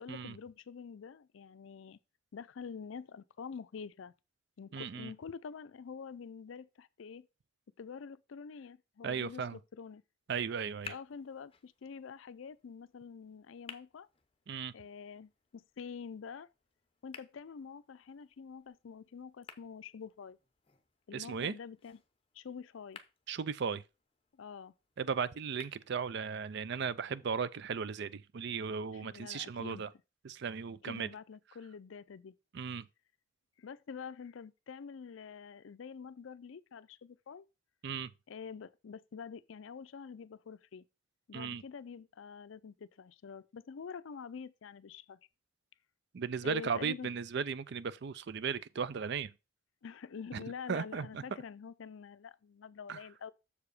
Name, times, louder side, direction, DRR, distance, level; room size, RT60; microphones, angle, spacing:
voice 1, 0.0-2.0 2.3-4.1 4.6-7.3 7.8-10.0 10.9-14.1 14.7-16.5 17.0-20.4 21.1-22.0 22.3-23.0 24.3-24.7 28.9-29.8 30.8-32.3 33.6-37.4 38.3-40.8 41.3-45.2 46.4-47.1 49.8-53.3, left 6 dB, 70° left, 0.4 m, -47 dB
voice 2, 4.7-5.1 9.0-9.6 10.3-10.9 14.5-14.7 21.1-21.6 23.3-23.8 25.0-29.9 30.2-31.1 32.5-32.9 37.8-38.1 41.3-41.6 46.1-49.3 50.3-50.4 50.7-51.2 52.9-53.0, right 6 dB, 55° right, 0.4 m, -36 dB
sound 1, 10.4-26.4, left 6 dB, 25° left, 0.7 m, -57 dB
6.9 x 4.8 x 4.8 m
head